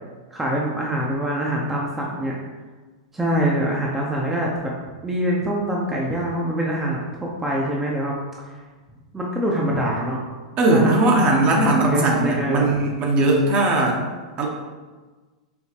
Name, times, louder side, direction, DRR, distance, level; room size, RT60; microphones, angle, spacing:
voice 1, 0.3-2.3 3.1-4.5 5.0-8.5 9.1-10.2 10.7-11.2 11.7-12.7, right 1 dB, 10° right, -3 dB, 0.6 m, -24 dB
voice 2, 10.6-14.0 14.4-14.5, right 2 dB, 40° right, 0 dB, 0.9 m, -19 dB
4.5 x 3.2 x 2.9 m, 1.3 s
hypercardioid pair, 100°, 3 cm